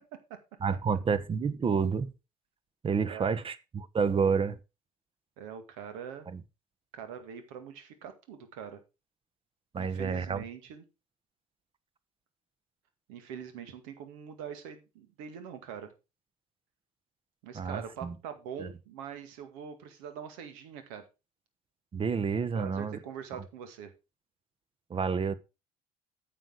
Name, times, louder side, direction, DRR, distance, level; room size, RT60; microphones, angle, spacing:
voice 1, 0.6-2.1 2.8-4.6 6.3-6.4 9.7-10.4 17.5-18.1 18.6-18.7 21.9-23.0 24.9-25.3, right 5 dB, 35° right, 1.1 m, -29 dB
voice 2, 3.1-3.4 5.4-6.3 6.9-8.8 9.8-10.8 13.1-15.9 17.4-21.0 22.5-23.9, right 8 dB, 75° right, 2.0 m, -43 dB
9.1 x 6.8 x 4.9 m
hypercardioid pair, 60°, 17 cm